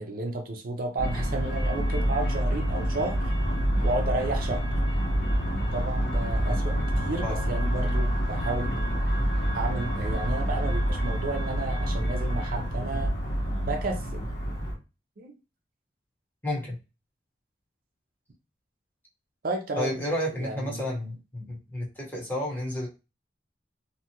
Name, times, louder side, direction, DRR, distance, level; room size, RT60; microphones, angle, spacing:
voice 1, 0.0-3.3 3.8-4.6 5.7-8.8 9.5-13.1 13.6-14.3 15.2-15.4 19.4-20.0 20.4-20.9, right 2 dB, 55° right, 0.5 m, -32 dB
sound 1, 1.0-14.7, equal, 85° left, 1.2 m, -27 dB
voice 2, 16.4-16.8 19.8-22.9, left 1 dB, 10° left, 1.0 m, -31 dB
2.7 x 2.3 x 2.8 m
head